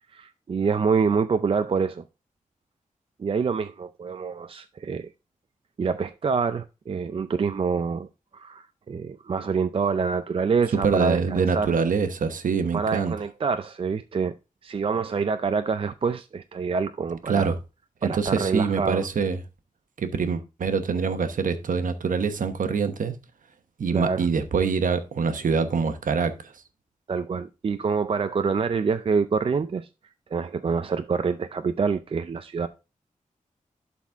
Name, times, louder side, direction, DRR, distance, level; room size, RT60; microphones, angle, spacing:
voice 1, 0.1-2.0 3.2-5.1 5.8-8.1 8.3-11.7 12.7-14.4 14.6-17.5 18.0-19.1 23.9-24.3 27.1-29.9 30.3-32.7, right 5 dB, 40° right, 0.4 m, -26 dB
voice 2, 10.8-13.1 17.3-17.5 18.0-19.4 20.0-23.1 23.8-26.5, right 5 dB, 75° right, 1.0 m, -25 dB
11.5 x 4.2 x 3.5 m
wide cardioid pair, 135°, 14 cm